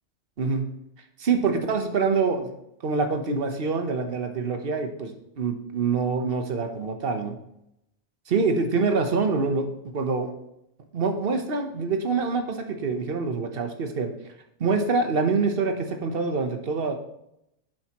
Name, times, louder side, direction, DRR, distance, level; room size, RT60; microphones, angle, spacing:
voice 1, 1.2-2.5 2.8-7.4 8.3-9.7 9.9-10.3 10.9-14.1 14.6-16.9, right 4 dB, 55° right, 5 dB, 1.2 m, -25 dB
11.0 x 7.8 x 3.0 m, 0.81 s
omnidirectional pair, 1.2 m